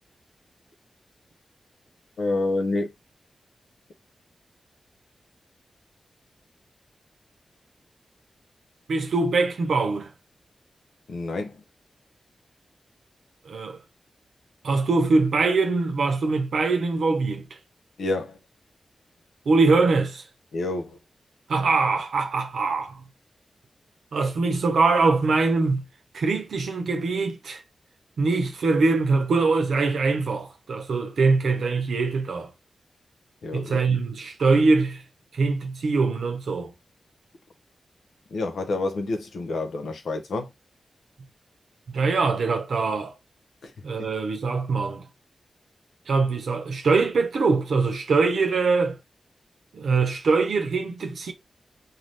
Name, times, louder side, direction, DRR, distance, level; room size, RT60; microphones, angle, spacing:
voice 1, 2.2-2.9 11.1-11.6 18.0-18.4 20.5-21.0 33.4-34.0 38.3-40.5 43.6-43.7 44.0-44.1, left 2 dB, 85° left, 0.7 m, -28 dB
voice 2, 8.9-10.1 13.5-13.8 14.6-17.5 19.5-20.2 21.5-23.0 24.1-25.9 26.1-27.6 28.2-32.5 33.5-35.0 35.3-36.7 41.9-43.1 43.8-45.0 46.1-49.0 49.7-51.3, right 3 dB, 85° right, 0.8 m, -23 dB
2.7 x 2.2 x 3.3 m
cardioid pair, 55°, 0 cm